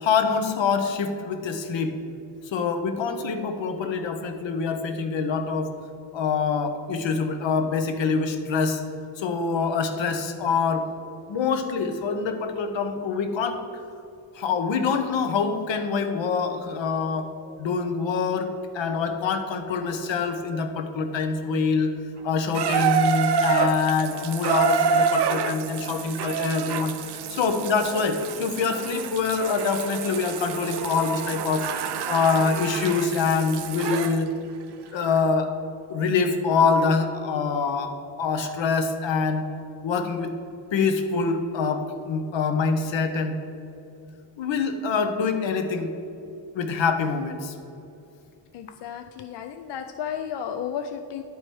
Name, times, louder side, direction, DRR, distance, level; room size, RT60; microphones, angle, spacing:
voice 1, 0.0-2.0 2.5-5.7 6.1-8.8 9.2-10.9 11.3-13.6 14.3-17.3 17.6-21.9 22.2-31.7 32.1-34.3 34.9-35.6 35.9-39.5 39.8-40.3 40.7-43.4 44.4-45.9 46.5-47.5, left 5 dB, 90° left, 7 dB, 0.9 m, -25 dB
Water tap faucet / Bathtub (filling or washing), 22.5-34.2 35.1-35.2, right 6 dB, 65° right, 0.5 m, -27 dB
voice 2, 48.5-51.2, left 8 dB, 70° left, 7 dB, 0.5 m, -33 dB
10.5 x 4.7 x 4.5 m, 2.7 s
wide cardioid pair, 155°, 44 cm